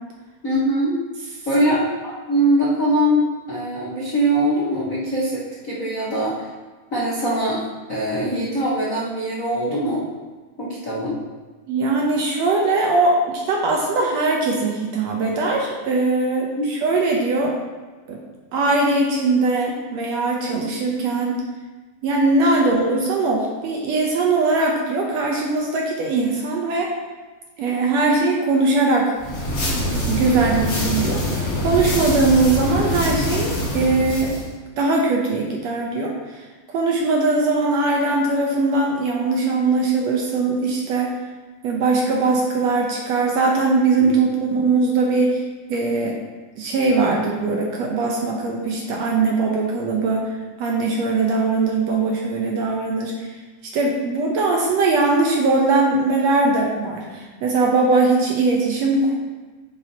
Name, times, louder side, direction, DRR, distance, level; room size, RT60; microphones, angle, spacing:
voice 1, 0.4-0.9 1.4-6.5 6.9-7.6 7.9-10.1 10.6-11.2 16.6-16.7 44.0-44.1, right 1 dB, 85° left, -6 dB, 0.7 m, -22 dB
voice 2, 11.7-17.5 18.1-18.2 18.5-21.4 22.0-27.0 27.6-29.1 30.1-34.3 34.8-36.4 36.7-41.1 41.6-45.4 45.7-46.2 46.6-50.3 50.6-53.3 53.7-59.1, right 3 dB, 70° right, -1 dB, 1.7 m, -20 dB
sound 1, 29.2-34.5, left 1 dB, 45° left, 2.9 m, -24 dB
10.0 x 7.4 x 2.9 m, 1.3 s
omnidirectional pair, 3.8 m